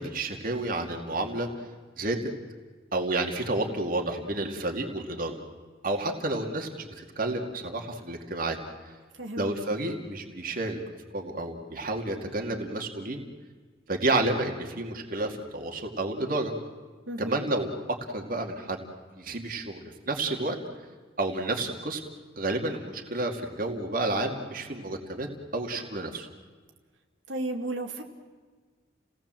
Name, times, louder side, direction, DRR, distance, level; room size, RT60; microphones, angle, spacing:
voice 1, 0.0-1.5 2.0-2.3 2.9-5.4 5.8-8.6 9.4-10.8 11.1-13.2 13.9-16.5 17.2-18.8 19.2-20.6 21.2-22.0 22.4-25.3 25.5-26.3, right 2 dB, 45° right, 3 dB, 2.3 m, -30 dB
voice 2, 9.2-9.5 17.1-17.4 27.3-28.0, right 2 dB, 70° right, 2 dB, 2.2 m, -33 dB
30.0 x 18.0 x 7.6 m, 1.4 s
head